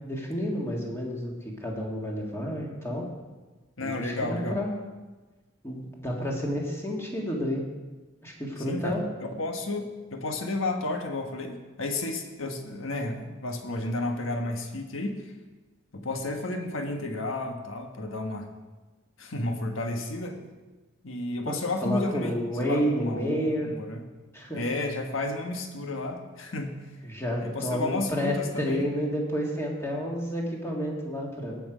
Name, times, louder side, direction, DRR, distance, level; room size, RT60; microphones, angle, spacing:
voice 1, 0.0-3.1 3.8-4.7 5.6-7.6 8.2-9.0 21.5-21.6 21.8-23.7 24.3-24.6 27.0-31.6, equal, 15° left, -1 dB, 1.8 m, -30 dB
voice 2, 3.8-4.6 8.6-15.2 15.9-18.5 19.2-20.4 21.0-24.0 24.5-26.7 27.4-28.8, left 2 dB, 80° left, 4 dB, 1.4 m, -32 dB
17.5 x 6.2 x 5.1 m, 1.2 s
head